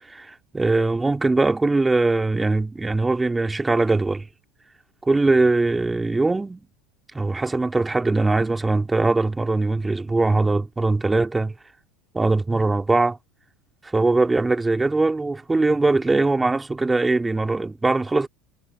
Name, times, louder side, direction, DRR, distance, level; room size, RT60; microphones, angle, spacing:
voice 1, 0.0-4.3 5.0-6.6 7.1-11.5 12.1-13.2 13.8-18.3, right 3 dB, 15° right, 2.6 m, -21 dB
hypercardioid pair, 80°, 0 cm